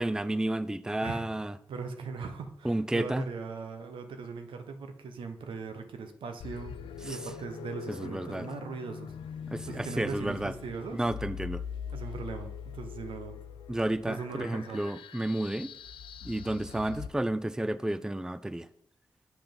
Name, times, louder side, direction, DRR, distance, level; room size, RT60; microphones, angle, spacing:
voice 1, 0.0-1.5 2.6-3.2 7.1-7.2 7.9-8.5 9.5-10.5 10.9-11.6 13.7-15.7 16.2-18.7, right 1 dB, 5° right, 0.4 m, -31 dB
voice 2, 1.0-6.8 7.0-9.1 9.6-11.0 11.9-13.4 14.0-14.8, right 5 dB, 85° right, 0.8 m, -39 dB
sound 1, 6.4-17.1, left 7 dB, 90° left, 0.4 m, -42 dB
7.1 x 5.8 x 5.2 m
supercardioid pair, 45°, 9 cm